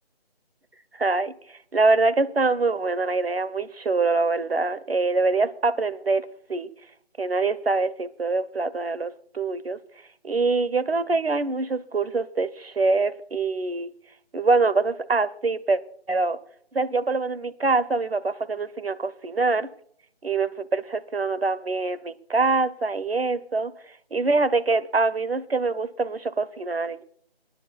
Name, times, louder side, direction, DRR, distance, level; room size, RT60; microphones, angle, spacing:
voice 1, 1.0-6.7 7.2-9.8 10.2-13.9 14.3-15.8 16.1-16.4 16.7-19.7 20.2-23.7 24.1-27.0, right 3 dB, 70° right, 1.0 m, -24 dB
25.0 x 10.5 x 2.3 m
figure-of-eight pair, 180°, 31 cm